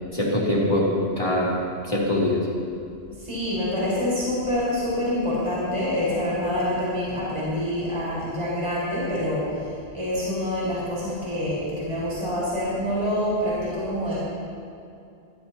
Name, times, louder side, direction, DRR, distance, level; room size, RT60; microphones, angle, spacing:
voice 1, 0.1-1.6 1.8-2.4, left 1 dB, 30° left, -5 dB, 3.6 m, -23 dB
voice 2, 3.2-9.5 9.9-14.2, left 1 dB, 30° right, -9 dB, 5.2 m, -26 dB
25.5 x 16.0 x 3.0 m, 2.5 s
omnidirectional pair, 1.1 m